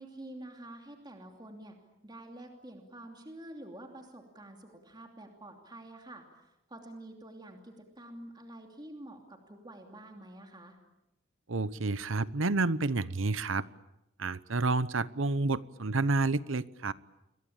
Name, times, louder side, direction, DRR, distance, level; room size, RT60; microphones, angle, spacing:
voice 1, 0.0-1.8 2.0-10.8, right 1 dB, 20° right, 3 dB, 2.8 m, -48 dB
voice 2, 11.5-13.6 14.2-16.9, right 3 dB, 65° right, 17 dB, 0.9 m, -29 dB
29.5 x 23.0 x 8.8 m, 0.91 s
head